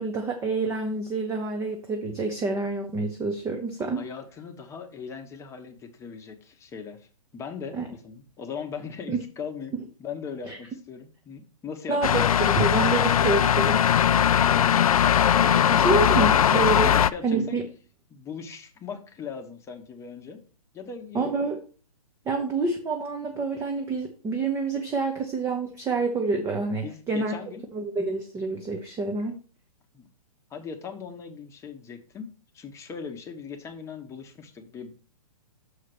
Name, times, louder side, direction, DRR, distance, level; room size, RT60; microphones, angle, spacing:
voice 1, 0.0-4.0 7.7-7.9 9.1-9.2 10.5-10.6 11.9-13.8 15.7-16.9 17.2-17.6 21.1-21.6 22.3-27.4 27.7-29.4, right 3 dB, 15° right, 4 dB, 0.9 m, -27 dB
voice 2, 4.0-7.1 7.3-12.2 14.2-14.8 15.3-16.0 16.8-17.6 18.1-20.4 20.7-21.4 26.8-27.6 29.9-30.1 30.5-34.9, left 6 dB, 15° left, 5 dB, 1.1 m, -39 dB
sound 1, 12.0-17.1, left 9 dB, 70° left, 0.4 m, -20 dB
6.6 x 4.7 x 6.0 m, 0.38 s
hypercardioid pair, 130°, 19 cm